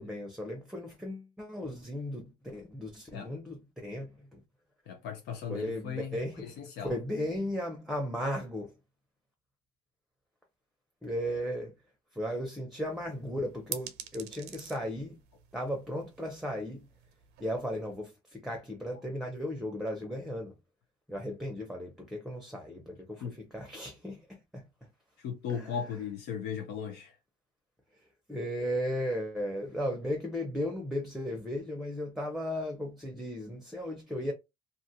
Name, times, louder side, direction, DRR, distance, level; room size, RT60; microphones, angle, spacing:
voice 1, 0.0-4.4 5.5-6.5 6.8-8.7 11.0-11.7 12.1-15.2 15.5-16.9 17.4-20.5 21.1-24.6 25.5-25.8 28.3-34.3, equal, ahead, 0.7 m, -36 dB
voice 2, 4.9-6.9 23.2-23.3 25.2-27.1, left 7 dB, 85° left, 0.7 m, -37 dB
sound 1, 12.8-18.0, right 10 dB, 85° right, 0.6 m, -47 dB
2.5 x 2.4 x 2.7 m
cardioid pair, 110°, 17 cm